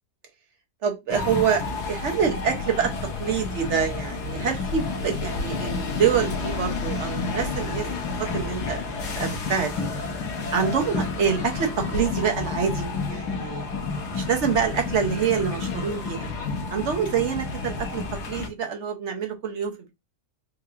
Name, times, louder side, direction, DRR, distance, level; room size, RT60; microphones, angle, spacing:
voice 1, 0.8-7.9 8.2-9.9 10.5-13.6 14.1-16.3 16.7-18.0 18.3-19.9, right 7 dB, 55° right, 4 dB, 0.9 m, -26 dB
sound 1, 1.1-18.5, left 4 dB, 90° left, 1.5 m, -30 dB
4.8 x 2.8 x 2.4 m, 0.22 s
omnidirectional pair, 1.7 m